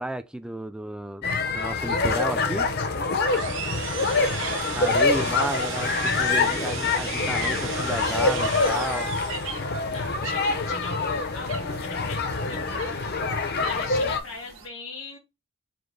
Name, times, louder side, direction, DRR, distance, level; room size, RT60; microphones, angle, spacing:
voice 1, 0.0-2.7 4.7-9.1, right 1 dB, 5° right, 0.3 m, -32 dB
sound 1, 1.2-14.2, left 3 dB, 55° left, 0.7 m, -25 dB
sound 2, 3.2-9.8, right 7 dB, 65° right, 0.8 m, -36 dB
sound 3, 3.7-14.7, right 4 dB, 80° right, 1.4 m, -43 dB
voice 2, 4.1-4.7 9.9-15.2, left 3 dB, 80° left, 2.0 m, -40 dB
5.1 x 2.1 x 3.8 m
head